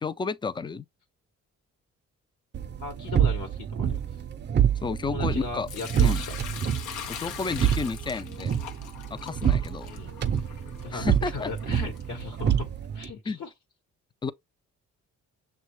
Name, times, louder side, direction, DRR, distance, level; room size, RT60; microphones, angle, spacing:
voice 1, 0.0-0.9 4.8-5.7 6.0-6.2 7.1-8.6 9.1-9.9 10.9-11.5 13.3-13.4 14.2-14.3, left 4 dB, 15° left, 0.3 m, -31 dB
sound 1, 2.5-13.1, right 9 dB, 35° right, 0.5 m, -27 dB
voice 2, 2.8-4.0 5.0-6.3 9.8-10.1 10.8-12.7 12.9-13.5, left 4 dB, 65° left, 1.1 m, -37 dB
Sink (filling or washing) / Liquid, 5.7-12.6, left 9 dB, 85° left, 0.8 m, -42 dB
6.2 x 2.3 x 3.1 m
cardioid pair, 90°, 30 cm